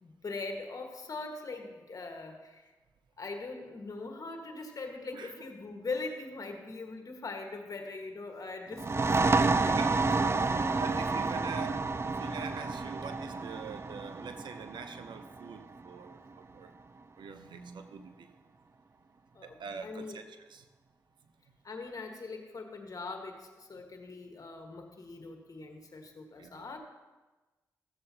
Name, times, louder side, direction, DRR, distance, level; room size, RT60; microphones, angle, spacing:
voice 1, 0.0-2.7 3.2-11.0 19.3-20.2 21.6-26.8, left 3 dB, 50° left, 4 dB, 1.5 m, -42 dB
voice 2, 5.1-5.5 9.8-10.0 10.8-16.7 17.2-18.3 19.3-20.7 26.4-26.7, right 5 dB, 75° right, 8 dB, 0.7 m, -44 dB
sound 1, 8.7-16.1, right 3 dB, 35° right, 0.4 m, -30 dB
14.0 x 7.8 x 2.8 m, 1.2 s
supercardioid pair, 45°, 8 cm